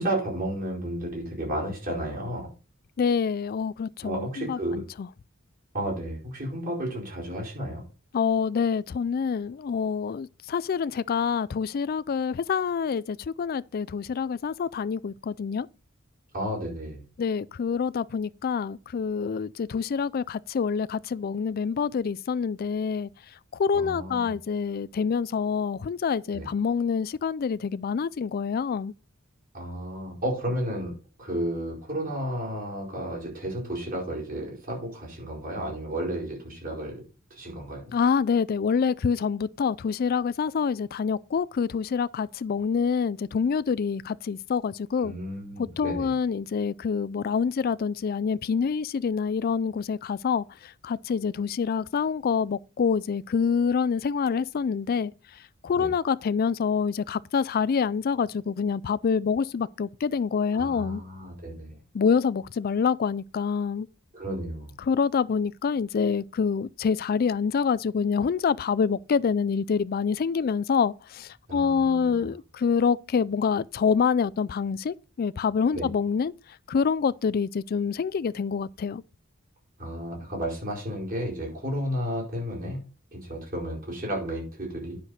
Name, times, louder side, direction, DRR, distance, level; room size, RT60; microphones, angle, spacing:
voice 1, 0.0-2.5 4.0-4.8 5.7-7.8 16.3-17.0 23.7-24.3 26.3-26.5 29.5-30.9 31.2-37.0 37.3-37.9 45.0-46.1 55.7-55.9 60.5-61.8 64.1-64.7 71.5-72.3 75.7-75.9 79.8-82.8 83.1-85.0, right 1 dB, 45° right, 5.0 m, -32 dB
voice 2, 3.0-4.8 8.1-15.7 17.2-23.1 23.6-28.9 37.9-45.1 45.6-50.4 50.8-55.1 55.6-61.0 61.9-63.9 64.8-76.3 76.7-79.0, left 6 dB, 45° left, 0.3 m, -26 dB
9.8 x 6.4 x 4.2 m
head